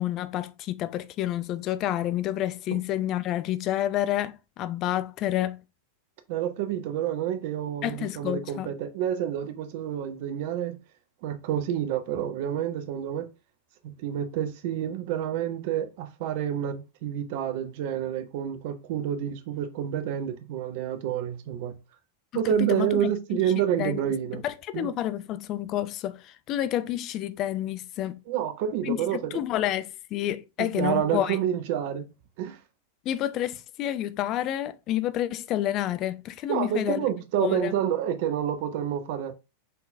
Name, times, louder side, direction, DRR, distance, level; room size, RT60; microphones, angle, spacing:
voice 1, 0.0-5.6 7.8-8.7 22.6-23.0 23.8-24.0 24.3-28.2 28.8-29.0 29.3-31.4 33.1-37.1 37.4-37.7, left 12 dB, 35° left, 0.4 m, -29 dB
voice 2, 6.3-10.8 11.2-13.2 13.8-21.8 22.3-24.4 24.7-24.9 28.3-29.3 30.6-32.1 32.4-32.6 36.5-39.3, right 10 dB, 50° right, 0.8 m, -28 dB
4.1 x 3.7 x 2.6 m
figure-of-eight pair, 90°, 0 cm